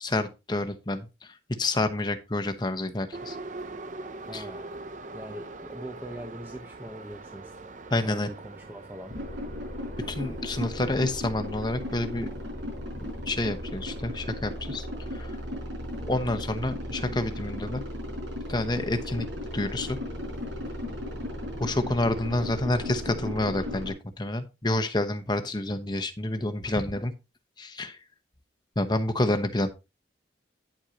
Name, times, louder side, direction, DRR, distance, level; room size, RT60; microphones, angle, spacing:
voice 1, 0.0-3.4 4.3-4.4 7.9-8.3 10.1-12.3 13.3-14.9 15.1-15.4 16.1-17.8 18.5-19.3 19.5-20.0 21.6-27.1 27.6-28.0 28.8-29.7, left 2 dB, 25° left, 1.0 m, -28 dB
Subway metro underground, 3.1-22.9, right 2 dB, 40° right, 0.7 m, -45 dB
voice 2, 4.2-4.8 5.1-7.5 8.0-9.2, right 1 dB, 10° right, 0.8 m, -42 dB
sound 1, 9.1-23.9, left 1 dB, 75° right, 5.3 m, -36 dB
10.5 x 7.9 x 2.8 m
head